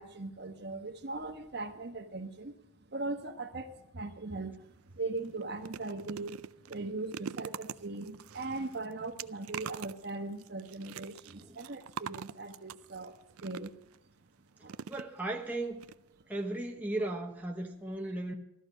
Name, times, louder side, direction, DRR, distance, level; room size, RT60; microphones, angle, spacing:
voice 1, 0.0-2.6 2.9-13.8 14.6-14.8, right 3 dB, 50° right, 1.2 m, -40 dB
sound 1, 4.6-4.8 5.2-14.0 14.7-15.5 15.8-15.9 16.2-16.3, right 8 dB, 85° right, 0.4 m, -45 dB
voice 2, 14.9-15.8 16.3-18.3, right 2 dB, 10° right, 1.0 m, -36 dB
14.0 x 13.5 x 5.0 m
head